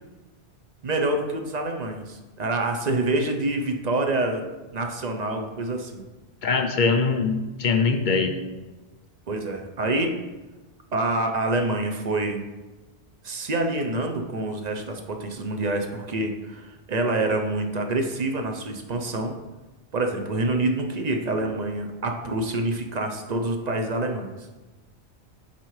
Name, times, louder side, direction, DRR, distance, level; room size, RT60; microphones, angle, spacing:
voice 1, 0.8-4.5 4.7-6.0 9.3-10.2 10.9-12.4 13.2-19.4 19.9-24.3, right 2 dB, 45° right, 4 dB, 0.6 m, -26 dB
voice 2, 6.4-8.4, left 4 dB, 55° left, 5 dB, 0.6 m, -22 dB
7.9 x 4.2 x 3.2 m, 1.2 s
omnidirectional pair, 1.1 m